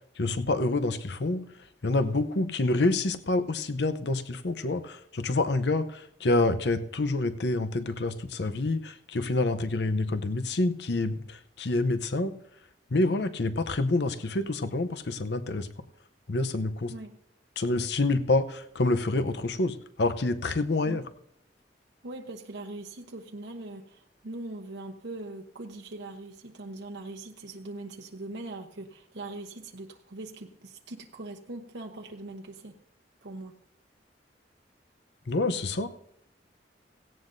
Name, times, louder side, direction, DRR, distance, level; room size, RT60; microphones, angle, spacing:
voice 1, 0.2-1.4 1.8-12.4 12.9-15.7 16.3-16.9 17.6-21.0 35.3-35.9, left 2 dB, 70° left, 11 dB, 0.7 m, -27 dB
voice 2, 22.0-32.8 33.2-33.6, right 2 dB, 85° right, 3 dB, 1.0 m, -41 dB
17.0 x 16.0 x 2.6 m, 0.73 s
head